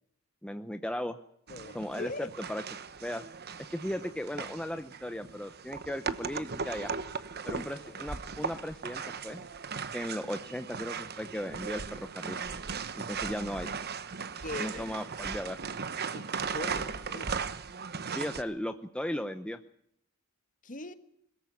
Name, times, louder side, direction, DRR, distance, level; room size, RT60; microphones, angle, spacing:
voice 1, 0.4-1.2 1.7-2.6 3.0-3.2 3.7-7.0 7.4-9.4 9.9-12.4 13.0-13.7 14.6-15.6 18.1-19.6, left 1 dB, 5° left, 0.7 m, -36 dB
voice 2, 1.5-2.3 7.4-8.1 14.4-15.0 16.1-17.4 20.6-20.9, left 2 dB, 40° left, 1.5 m, -42 dB
sound 1, 1.5-18.4, right 5 dB, 50° right, 1.1 m, -38 dB
22.0 x 14.5 x 9.2 m
head